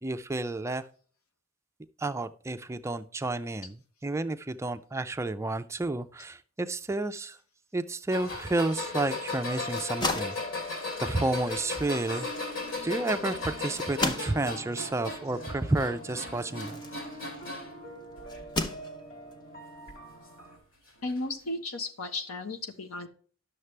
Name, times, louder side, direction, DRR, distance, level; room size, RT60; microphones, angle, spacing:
voice 1, 0.0-0.9 2.0-7.4 7.7-10.4 11.0-12.3 12.8-16.8, right 2 dB, 15° right, 11 dB, 0.4 m, -31 dB
sound 1, 8.1-17.8 18.2-18.8 19.9-20.0 21.1-21.2, left 3 dB, 65° left, 2.9 m, -37 dB
sound 2, 8.7-20.6, right 1 dB, 40° left, 1.9 m, -45 dB
sound 3, 9.7-17.6 18.3-19.3, left 2 dB, 20° left, 0.7 m, -37 dB
voice 2, 21.0-23.1, left 2 dB, 85° left, 6 dB, 1.2 m, -34 dB
11.0 x 6.6 x 3.3 m, 0.43 s
head